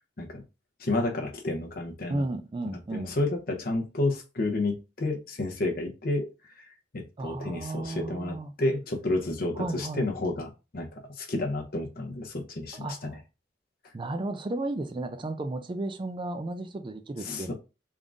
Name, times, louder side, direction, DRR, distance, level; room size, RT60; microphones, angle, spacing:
voice 1, 0.8-2.2 2.7-6.3 6.6-13.2 17.2-17.5, left 2 dB, 55° left, 0.8 m, -31 dB
voice 2, 2.1-3.2 7.2-8.5 9.6-10.1 12.7-13.2 13.9-17.5, right 2 dB, 25° right, 0.3 m, -34 dB
3.6 x 2.5 x 3.6 m
head